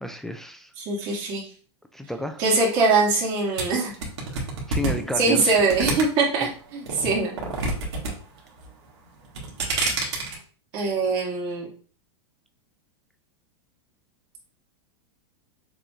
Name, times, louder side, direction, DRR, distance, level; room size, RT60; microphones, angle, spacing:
voice 1, 0.0-0.7 1.9-2.4 4.3-5.6 6.4-6.5, left 1 dB, 5° left, 6 dB, 0.3 m, -32 dB
voice 2, 0.8-1.5 2.4-3.9 5.2-7.4 10.7-11.7, right 3 dB, 45° right, -2 dB, 2.0 m, -22 dB
sound 1, 3.6-6.4 6.8-8.1 8.4-8.9 9.2-10.4, right 2 dB, 85° right, 1.7 m, -27 dB
6.7 x 3.0 x 2.4 m, 0.41 s
supercardioid pair, 140°, 14 cm